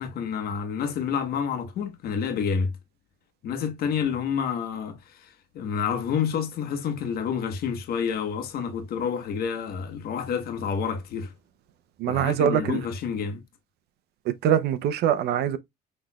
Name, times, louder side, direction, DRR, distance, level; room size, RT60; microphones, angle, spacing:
voice 1, 0.0-2.7 3.4-11.3 12.1-13.4, left 7 dB, 65° left, 1.1 m, -29 dB
voice 2, 12.0-12.8 14.3-15.6, right 9 dB, 75° right, 0.6 m, -23 dB
5.9 x 3.3 x 2.2 m
cardioid pair, 110°, 17 cm